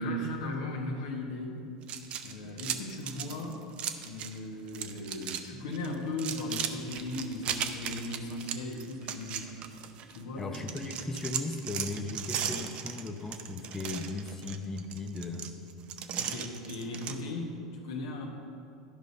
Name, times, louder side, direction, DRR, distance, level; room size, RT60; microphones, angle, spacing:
voice 1, 0.0-1.6 2.2-3.6 4.0-9.5 10.1-10.5 16.1-18.3, left 2 dB, 65° left, 1 dB, 1.3 m, -37 dB
sound 1, 1.8-4.4 4.7-5.4 5.7-10.2 10.5-17.2, right 9 dB, 45° right, 0.6 m, -37 dB
voice 2, 10.4-15.5, left 3 dB, 15° left, 3 dB, 0.7 m, -37 dB
12.0 x 5.2 x 5.3 m, 2.6 s
figure-of-eight pair, 80°, 3 cm